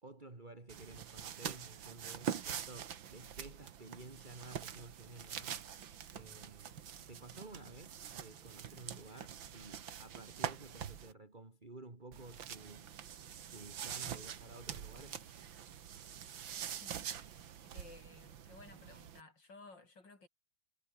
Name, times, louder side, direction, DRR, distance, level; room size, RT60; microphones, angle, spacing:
voice 1, 0.0-5.5 6.1-12.9 13.5-15.2, right 2 dB, 25° right, 3.0 m, -53 dB
sound 1, 0.7-11.1 12.1-19.2, right 9 dB, 90° right, 2.2 m, -45 dB
voice 2, 16.8-17.4 17.7-20.3, left 3 dB, 70° left, 5.5 m, -57 dB
omnidirectional pair, 2.0 m